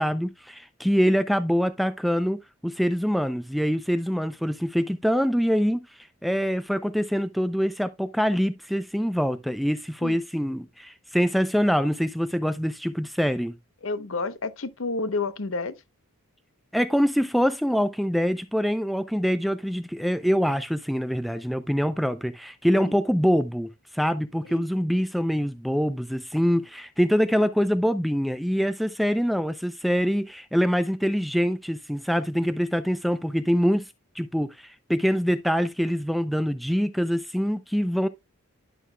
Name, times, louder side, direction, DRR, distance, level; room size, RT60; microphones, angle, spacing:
voice 1, 0.0-13.6 16.7-33.9 34.2-38.1, equal, ahead, 0.3 m, -24 dB
voice 2, 13.8-15.7 22.7-23.0 24.5-24.7, left 3 dB, 60° left, 0.8 m, -30 dB
11.0 x 6.5 x 2.2 m
head